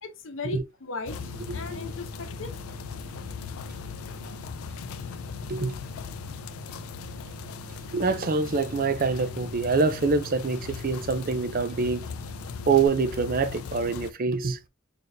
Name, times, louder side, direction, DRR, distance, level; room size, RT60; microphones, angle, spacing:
voice 1, 0.0-2.5, left 3 dB, 65° left, 0.8 m, -37 dB
sound 1, 1.1-14.1, left 7 dB, 85° left, 0.3 m, -39 dB
sound 2, 1.1-12.9, right 4 dB, 60° right, 1.1 m, -44 dB
voice 2, 7.9-12.0 12.7-14.6, right 4 dB, 45° right, 0.5 m, -25 dB
4.0 x 3.3 x 2.6 m
head